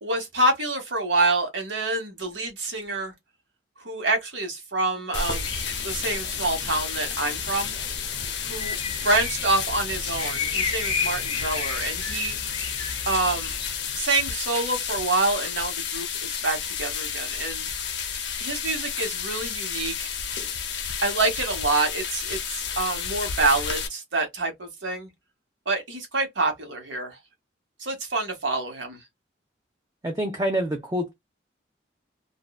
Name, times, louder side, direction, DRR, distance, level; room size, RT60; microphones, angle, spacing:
voice 1, 0.0-3.1 3.8-5.5 5.8-7.7 8.4-12.4 13.0-13.5 13.9-17.7 18.4-20.1 21.0-25.1 25.7-27.2 27.8-29.0, right 2 dB, 85° right, 1.2 m, -27 dB
sound 1, 5.1-23.9, left 7 dB, 70° left, 0.6 m, -31 dB
sound 2, 5.3-14.0, left 4 dB, 25° left, 0.6 m, -34 dB
voice 2, 30.0-31.1, equal, 20° right, 0.5 m, -26 dB
2.6 x 2.2 x 2.2 m
head